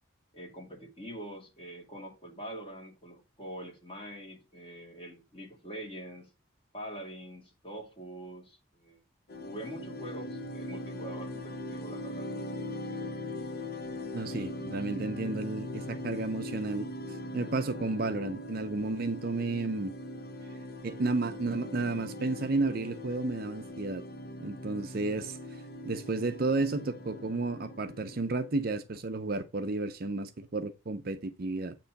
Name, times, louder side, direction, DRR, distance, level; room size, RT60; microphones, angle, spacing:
voice 1, 0.3-6.3 6.7-9.0 9.4-12.3 12.9-13.0, right 1 dB, 25° left, 2.2 m, -44 dB
sound 1, 9.3-28.8, left 1 dB, 50° left, 0.6 m, -41 dB
voice 2, 14.1-16.9 17.3-19.9 20.8-24.0 24.4-25.4 25.8-31.8, right 3 dB, 45° right, 0.6 m, -32 dB
8.0 x 3.0 x 5.6 m
head